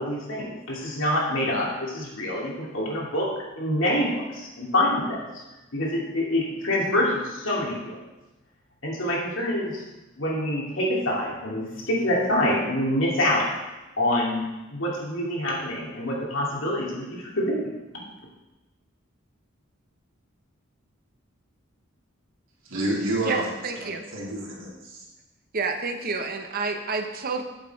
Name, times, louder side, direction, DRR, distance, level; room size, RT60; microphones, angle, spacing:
voice 1, 0.0-5.3 5.7-8.0 8.8-9.8 10.2-13.5 14.0-17.7, left 1 dB, 75° left, -3 dB, 2.4 m, -26 dB
voice 2, 22.6-25.0, right 1 dB, 75° right, -4 dB, 2.6 m, -29 dB
voice 3, 23.2-24.0 25.5-27.4, right 4 dB, 45° right, 5 dB, 0.9 m, -29 dB
7.9 x 6.6 x 4.6 m, 1.0 s
head